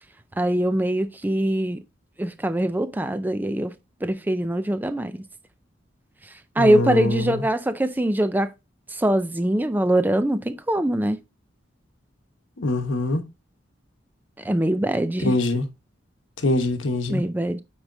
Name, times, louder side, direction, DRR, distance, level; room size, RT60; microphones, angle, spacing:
voice 1, 0.4-1.8 2.2-3.7 4.0-5.2 6.6-8.5 8.9-11.2 14.4-15.4 17.1-17.6, right 1 dB, 10° right, 0.4 m, -23 dB
voice 2, 6.6-7.4 12.6-13.3 15.2-15.7 16.4-17.2, left 2 dB, 85° left, 1.1 m, -23 dB
8.5 x 4.7 x 2.6 m
head